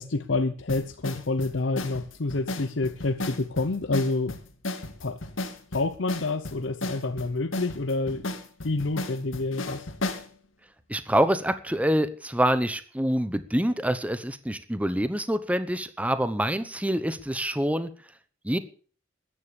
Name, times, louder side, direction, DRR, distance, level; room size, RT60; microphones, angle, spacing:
voice 1, 0.0-4.4 5.0-5.2 5.7-8.3 8.6-9.9, left 3 dB, 65° left, 0.7 m, -28 dB
sound 1, 0.7-10.3, left 2 dB, 90° left, 2.2 m, -35 dB
voice 2, 10.9-17.9 18.4-18.6, equal, 5° right, 0.9 m, -26 dB
14.0 x 10.0 x 6.9 m
head